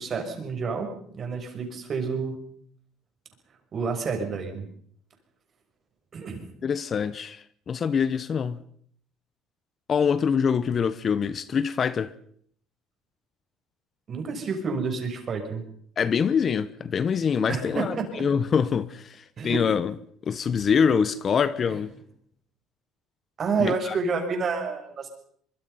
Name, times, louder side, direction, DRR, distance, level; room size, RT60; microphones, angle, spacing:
voice 1, 0.0-2.4 3.7-4.7 6.1-6.5 14.1-15.6 17.5-18.1 19.4-19.6 23.4-25.1, right 4 dB, 40° right, 6.3 m, -29 dB
voice 2, 6.6-8.6 9.9-12.1 16.0-19.9 20.3-21.9 23.6-24.0, left 6 dB, 40° left, 1.0 m, -25 dB
24.0 x 23.0 x 5.7 m
cardioid pair, 110°, 0 cm